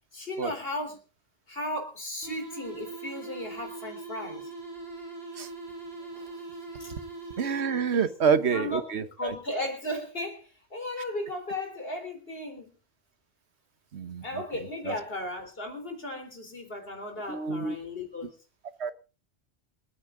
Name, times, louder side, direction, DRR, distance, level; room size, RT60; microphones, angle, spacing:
voice 1, 0.1-1.0 1.5-4.5 6.8-6.9 7.9-8.0 8.3-12.7 14.2-18.3, left 1 dB, 65° left, 5 dB, 4.2 m, -36 dB
sound 1, 2.2-8.2, right 3 dB, 65° right, 4.2 m, -41 dB
voice 2, 7.4-9.3 13.9-14.4 14.8-14.9 17.2-17.7 18.8-18.9, right 6 dB, 90° right, 13 dB, 1.4 m, -28 dB
27.0 x 9.7 x 3.8 m, 0.35 s
omnidirectional pair, 1.1 m